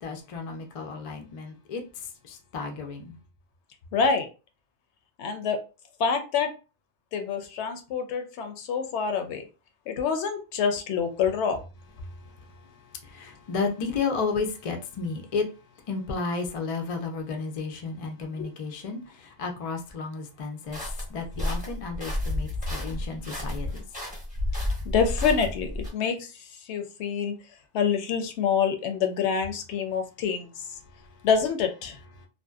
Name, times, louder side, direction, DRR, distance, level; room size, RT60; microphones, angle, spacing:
voice 1, 0.0-1.8 2.3-3.2 13.1-15.5 15.9-19.0 19.4-20.8 21.1-23.8, left 4 dB, 55° left, 0.4 m, -32 dB
voice 2, 3.9-4.3 5.2-5.6 6.0-6.5 7.1-9.4 9.9-11.6 18.4-18.5 24.8-26.3 26.6-27.3 27.7-30.5 31.2-32.0, left 6 dB, 75° left, 0.8 m, -26 dB
sound 1, 20.7-25.9, left 1 dB, 10° right, 0.7 m, -31 dB
2.6 x 2.1 x 2.3 m
omnidirectional pair, 1.2 m